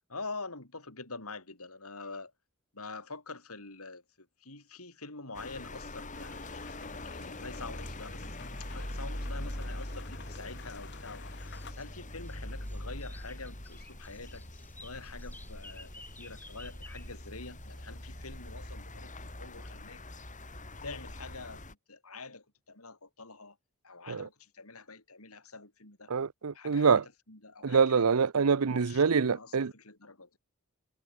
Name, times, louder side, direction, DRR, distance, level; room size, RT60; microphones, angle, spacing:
voice 1, 0.1-2.3 2.7-20.0 20.8-21.6 21.9-23.6 23.8-26.1 26.5-26.9 27.3-28.0 28.8-30.4, left 3 dB, 75° left, 7.1 m, -46 dB
sound 1, 5.3-21.7, left 1 dB, 35° left, 6.1 m, -42 dB
sound 2, 6.1-11.7, left 5 dB, 55° left, 5.8 m, -52 dB
sound 3, 11.4-17.8, left 2 dB, 10° left, 5.4 m, -56 dB
voice 2, 26.1-27.0 27.6-29.7, right 5 dB, 80° right, 0.7 m, -25 dB
head